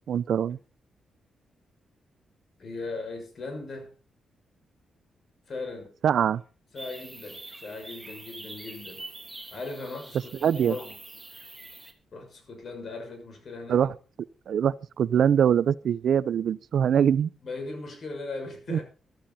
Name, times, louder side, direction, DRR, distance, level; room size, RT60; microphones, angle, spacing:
voice 1, 0.1-0.6 6.0-6.4 10.4-10.7 13.7-13.9 14.5-17.3 18.7-18.8, right 8 dB, 70° right, 0.6 m, -23 dB
voice 2, 2.6-3.9 5.5-6.0 6.7-9.0 9.5-10.9 12.1-13.8 17.4-18.8, left 3 dB, 55° left, 6.6 m, -38 dB
sound 1, 6.8-11.9, right 2 dB, 10° right, 3.0 m, -44 dB
14.0 x 13.5 x 4.3 m
cardioid pair, 80°, 0 cm